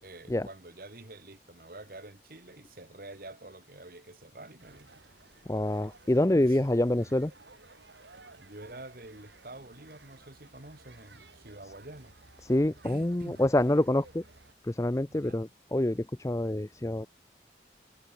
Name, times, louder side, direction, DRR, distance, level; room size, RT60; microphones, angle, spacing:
voice 1, 0.0-4.9 6.4-6.7 8.4-12.1 12.8-13.4 15.1-15.4, right 2 dB, 55° right, 2.1 m, -47 dB
sound 1, 4.6-14.5, right 2 dB, 85° right, 5.7 m, -56 dB
voice 2, 5.5-7.3 12.4-14.2 14.6-17.1, left 1 dB, 15° left, 0.5 m, -26 dB
head